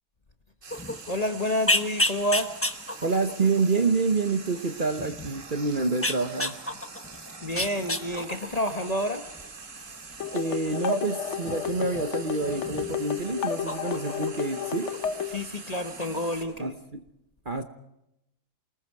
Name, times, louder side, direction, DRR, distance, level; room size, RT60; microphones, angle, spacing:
Frying (food), 0.6-16.4, right 4 dB, 55° right, 2.2 m, -44 dB
sound 1, 0.7-15.3 15.6-16.7, left 1 dB, 10° left, 0.8 m, -34 dB
voice 1, 1.1-2.6 7.4-9.3 15.2-16.8, left 1 dB, 30° left, 7 dB, 1.1 m, -29 dB
voice 2, 3.0-6.6 10.3-14.9 16.6-17.0 17.4-17.6, right 4 dB, 35° right, 8 dB, 1.1 m, -27 dB
sound 2, 10.2-15.4, left 8 dB, 55° left, 1.1 m, -32 dB
29.0 x 19.5 x 4.7 m, 0.86 s
omnidirectional pair, 1.6 m